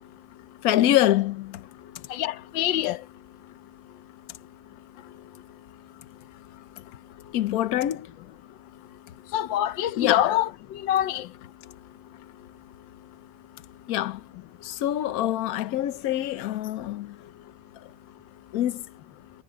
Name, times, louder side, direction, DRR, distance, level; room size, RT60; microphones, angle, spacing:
voice 1, 0.6-1.6 7.3-8.1 10.0-10.4 13.9-14.2 14.6-17.2 18.5-18.8, left 13 dB, 60° left, 1.1 m, -25 dB
voice 2, 2.1-3.0 9.3-11.3, left 12 dB, 90° left, 1.5 m, -25 dB
omnidirectional pair, 2.0 m